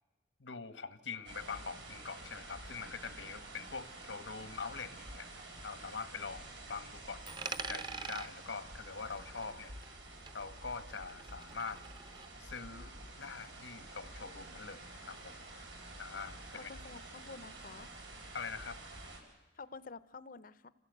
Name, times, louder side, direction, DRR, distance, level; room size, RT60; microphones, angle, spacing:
voice 1, 0.4-5.3 5.6-9.7 10.3-11.8 12.4-15.4 16.0-16.7 18.3-18.8, left 5 dB, 85° left, 11 dB, 1.2 m, -44 dB
sound 1, 1.3-19.2, right 2 dB, 80° right, 4.6 m, -50 dB
Coin (dropping), 7.3-10.0 10.3-12.3, right 4 dB, 25° right, 0.8 m, -45 dB
voice 2, 16.5-17.9 19.6-20.7, left 4 dB, 50° left, 16 dB, 0.7 m, -49 dB
27.5 x 15.5 x 8.0 m, 1.1 s
head